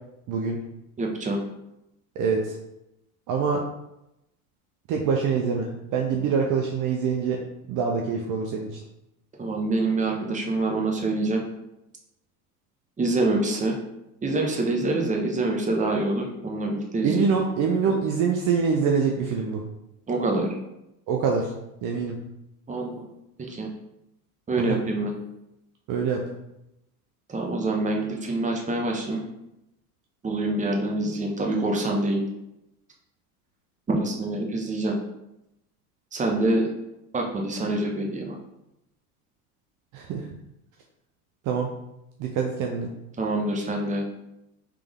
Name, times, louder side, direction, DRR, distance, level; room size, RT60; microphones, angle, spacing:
voice 1, 1.0-1.4 9.4-11.4 13.0-13.8 14.2-17.4 20.1-20.5 22.7-23.0 23.4-23.7 24.5-25.1 27.3-29.2 30.2-32.2 33.9-34.9 36.1-36.7 37.1-38.4 43.2-44.0, right 2 dB, 15° right, 0 dB, 0.9 m, -26 dB
voice 2, 2.2-2.6 3.3-3.6 4.9-7.4 7.7-8.7 17.0-19.6 21.1-21.5 21.8-22.2 24.6-24.8 25.9-26.2 39.9-40.2 41.5-41.7 42.2-42.9, right 6 dB, 45° right, 1 dB, 0.6 m, -25 dB
3.4 x 3.3 x 3.6 m, 0.87 s
hypercardioid pair, 90°, 44 cm